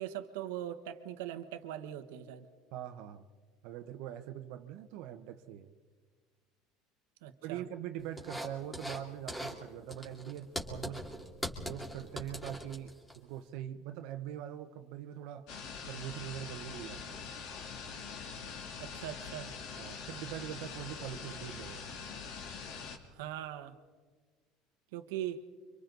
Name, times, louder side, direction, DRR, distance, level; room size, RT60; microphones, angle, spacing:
voice 1, 0.0-2.5 7.2-7.6 18.8-19.5 23.1-23.7 24.9-25.4, right 11 dB, 90° right, 8 dB, 1.3 m, -40 dB
voice 2, 2.7-3.2 3.6-5.7 7.4-11.0 11.6-15.5 15.9-17.2 19.8-21.9, right 11 dB, 70° right, 7 dB, 1.1 m, -43 dB
sound 1, 8.2-9.0 9.3-9.6 9.9-13.2, equal, 5° left, 2.7 m, -41 dB
sound 2, 15.5-23.0, left 5 dB, 65° left, 2.7 m, -44 dB
30.0 x 25.5 x 4.0 m, 1.5 s
cardioid pair, 135°, 0 cm